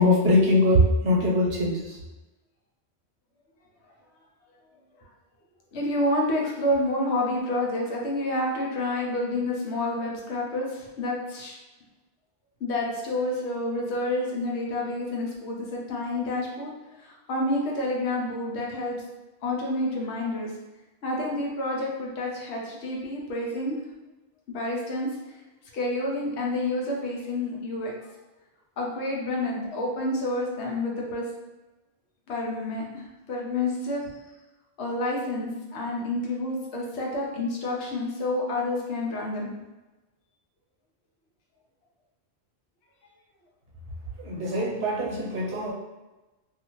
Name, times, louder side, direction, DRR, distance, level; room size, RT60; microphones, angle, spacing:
voice 1, 0.0-2.0 44.2-45.7, left 1 dB, 85° right, -3 dB, 1.1 m, -22 dB
voice 2, 5.7-11.5 12.6-16.7 17.0-19.0 19.4-20.5 21.0-23.8 24.5-25.1 25.7-27.9 28.8-31.3 32.3-34.0 34.8-39.5, left 1 dB, 85° left, -2 dB, 1.0 m, -29 dB
2.7 x 2.4 x 2.9 m, 1.1 s
omnidirectional pair, 1.1 m